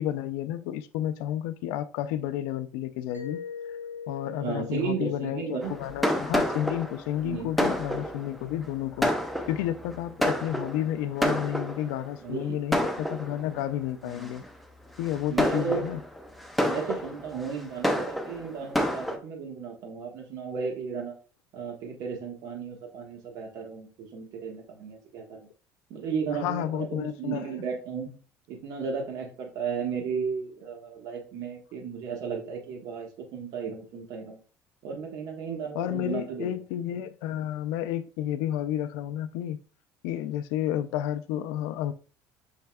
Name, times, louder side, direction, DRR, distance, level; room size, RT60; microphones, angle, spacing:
voice 1, 0.0-3.4 4.1-9.1 9.5-14.4 15.0-16.0 26.3-27.4 35.7-39.6 40.0-41.9, left 11 dB, 90° left, 0.3 m, -31 dB
Mallet percussion, 3.1-7.8, left 6 dB, 25° right, 1.4 m, -43 dB
voice 2, 4.3-5.7 7.2-7.5 7.8-8.1 12.2-12.6 14.0-14.4 15.3-15.8 16.6-21.1 21.5-25.5 25.9-28.1 28.5-34.4 34.8-36.5, right 6 dB, 65° right, 1.2 m, -34 dB
Fireworks, 5.6-12.1 12.7-13.6 14.2-14.5 15.0-19.2, equal, ahead, 0.6 m, -29 dB
5.6 x 4.1 x 2.2 m
cardioid pair, 120°, 7 cm